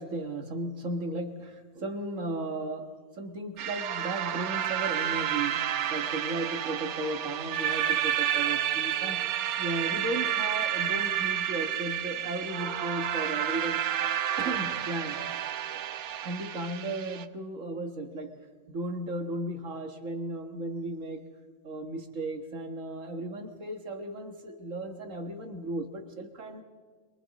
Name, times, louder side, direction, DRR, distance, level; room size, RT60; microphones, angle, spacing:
voice 1, 0.0-2.9 3.2-9.2 9.6-13.9 14.4-15.5 16.2-18.4 18.7-21.3 21.6-26.6, right 2 dB, 60° right, 5 dB, 1.9 m, -35 dB
sound 1, 3.6-17.2, right 10 dB, 80° right, 1.2 m, -30 dB
27.0 x 23.0 x 4.1 m, 1.4 s
omnidirectional pair, 1.5 m